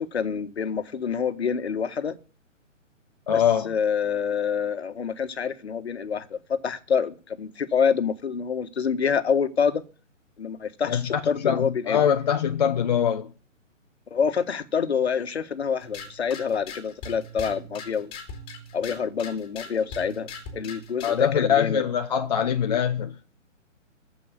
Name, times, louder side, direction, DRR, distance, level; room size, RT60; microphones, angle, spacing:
voice 1, 0.0-2.2 3.3-9.8 10.4-12.0 14.1-18.1 18.7-20.3 20.5-21.8, left 6 dB, 55° left, 1.7 m, -27 dB
voice 2, 3.3-3.7 10.9-13.3 21.0-23.2, left 8 dB, 35° left, 0.7 m, -23 dB
sound 1, 15.8-21.3, left 3 dB, 15° left, 2.8 m, -40 dB
15.0 x 5.4 x 9.6 m
figure-of-eight pair, 135°, 39 cm